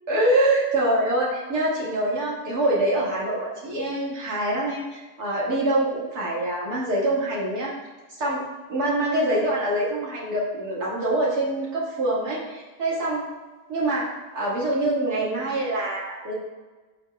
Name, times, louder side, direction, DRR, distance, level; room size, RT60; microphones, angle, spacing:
voice 1, 0.1-7.7 8.2-13.2 13.7-16.3, right 1 dB, 75° right, -6 dB, 2.5 m, -25 dB
12.0 x 5.8 x 2.4 m, 1.3 s
omnidirectional pair, 1.7 m